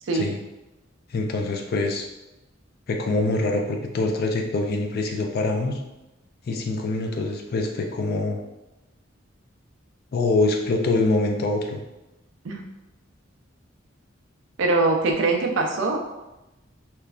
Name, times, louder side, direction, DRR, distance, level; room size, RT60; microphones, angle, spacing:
voice 1, 1.1-2.0 2.9-5.8 6.5-8.4 10.1-11.8, left 2 dB, 50° left, 3 dB, 0.4 m, -24 dB
voice 2, 14.6-16.0, right 3 dB, 70° right, 2 dB, 0.4 m, -22 dB
3.0 x 2.2 x 2.4 m, 0.98 s
head